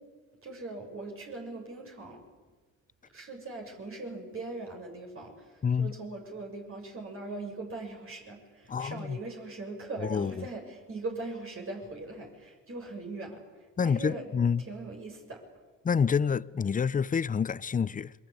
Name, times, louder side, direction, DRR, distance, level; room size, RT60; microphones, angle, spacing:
voice 1, 0.4-2.2 3.1-14.3 14.6-15.4, right 3 dB, 45° right, 7.0 m, -40 dB
voice 2, 5.6-5.9 8.7-9.2 10.0-10.5 13.8-14.6 15.8-18.1, left 6 dB, 25° left, 0.7 m, -28 dB
27.5 x 22.0 x 8.6 m
supercardioid pair, 70°, 32 cm